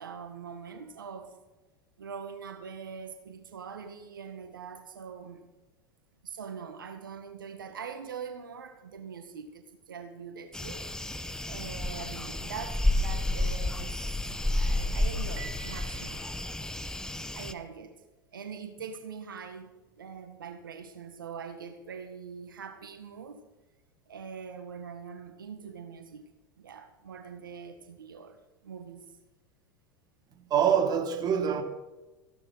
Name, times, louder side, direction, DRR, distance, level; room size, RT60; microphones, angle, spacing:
voice 1, 0.0-1.3 2.0-5.5 6.2-10.8 11.4-14.1 14.5-16.3 17.3-18.0 18.3-23.4 24.1-26.3 26.6-28.4 28.6-29.2, right 6 dB, 85° right, 1.7 m, -43 dB
sound 1, 10.5-17.5, left 1 dB, 5° left, 1.3 m, -31 dB
Piano, 15.4-17.3, right 7 dB, 60° right, 5.8 m, -50 dB
voice 2, 30.5-31.6, right 8 dB, 40° right, 2.9 m, -25 dB
16.0 x 11.0 x 6.3 m
hypercardioid pair, 90°, 11 cm